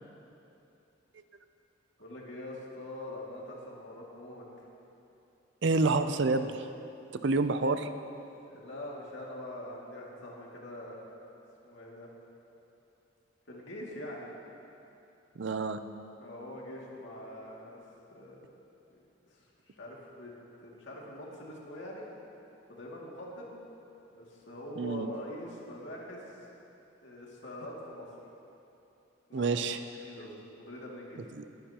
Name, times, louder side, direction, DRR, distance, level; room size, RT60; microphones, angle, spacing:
voice 1, 2.0-4.7 8.5-11.0 11.6-12.1 13.5-14.3 16.2-17.8 18.1-18.5 18.9-20.3 20.6-22.1 22.7-23.5 24.1-26.3 27.0-28.1 29.3-29.4 30.0-31.2, left 1 dB, 70° left, -4 dB, 2.3 m, -44 dB
voice 2, 5.6-6.7 7.1-7.9 15.4-15.8 24.8-25.1 29.3-29.8 31.4-31.5, right 3 dB, 60° right, 10 dB, 0.5 m, -28 dB
21.5 x 10.0 x 2.9 m, 2.8 s
head